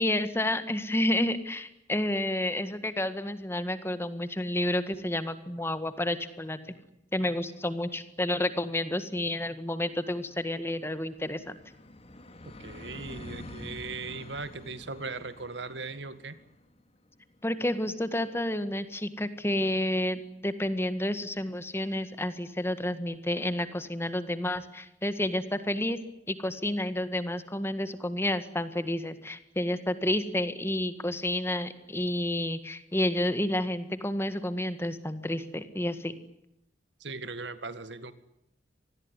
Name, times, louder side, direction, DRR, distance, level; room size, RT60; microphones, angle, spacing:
voice 1, 0.0-6.8 7.1-11.6 17.4-26.0 26.3-36.2, left 1 dB, 15° left, 11 dB, 1.8 m, -30 dB
sound 1, 8.9-19.6, left 1 dB, 35° left, 2.9 m, -49 dB
voice 2, 12.5-16.4 37.0-38.1, right 3 dB, 75° right, 13 dB, 2.0 m, -39 dB
26.5 x 20.0 x 9.8 m, 0.82 s
head